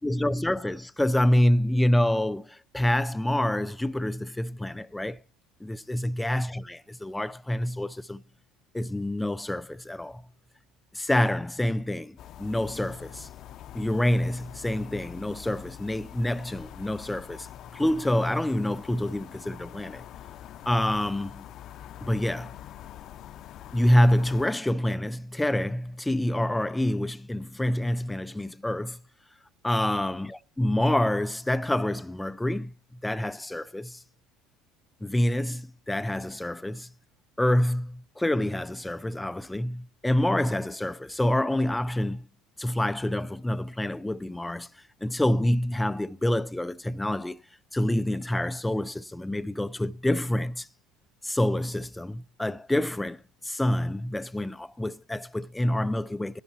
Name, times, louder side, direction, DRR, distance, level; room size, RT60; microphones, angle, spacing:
voice 1, 0.0-5.2 5.6-8.2 8.7-10.2 10.9-13.3 13.7-17.5 17.7-20.0 20.7-21.5 22.0-22.5 23.7-29.0 29.6-32.7 33.0-34.0 35.0-36.9 37.4-42.2 42.6-44.7 45.0-47.4 47.7-50.7 51.2-56.4, left 1 dB, 5° left, 0.5 m, -27 dB
sound 1, 12.2-24.5, left 11 dB, 45° left, 0.7 m, -45 dB
13.0 x 11.0 x 4.3 m
cardioid pair, 135°, 0 cm